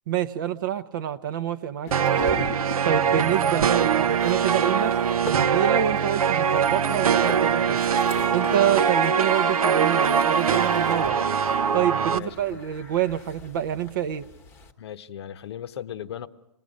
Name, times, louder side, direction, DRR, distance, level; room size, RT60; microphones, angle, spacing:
voice 1, 0.1-2.5 2.8-5.0 5.2-7.8 8.3-11.2 11.7-14.3, right 10 dB, 35° right, 13 dB, 0.7 m, -27 dB
sound 1, 1.9-14.7, left 3 dB, 10° left, 1.1 m, -42 dB
sound 2, 1.9-12.2, right 7 dB, 75° right, 0.8 m, -22 dB
Harp, 6.9-12.7, left 7 dB, 75° left, 0.8 m, -38 dB
voice 2, 12.1-12.6 14.8-16.3, left 10 dB, 45° left, 14 dB, 0.9 m, -37 dB
26.5 x 20.5 x 5.2 m, 0.83 s
hypercardioid pair, 160°, 19 cm